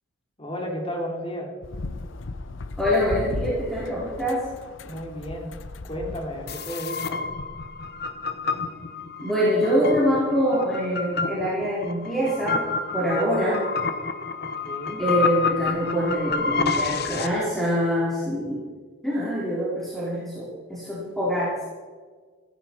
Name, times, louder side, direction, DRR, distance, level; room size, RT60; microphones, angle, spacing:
voice 1, 0.4-1.5 4.9-5.6 5.8-7.2 14.4-15.0, equal, 25° left, 1 dB, 2.9 m, -33 dB
sound 1, 1.6-6.6, left 2 dB, 70° left, 0.7 m, -36 dB
voice 2, 2.8-4.5 9.2-12.7 12.9-13.6 15.0-18.6 19.0-21.5, equal, ahead, -8 dB, 3.7 m, -24 dB
sound 2, 6.5-17.3, left 4 dB, 55° left, 1.1 m, -29 dB
15.5 x 15.0 x 4.5 m, 1.5 s
head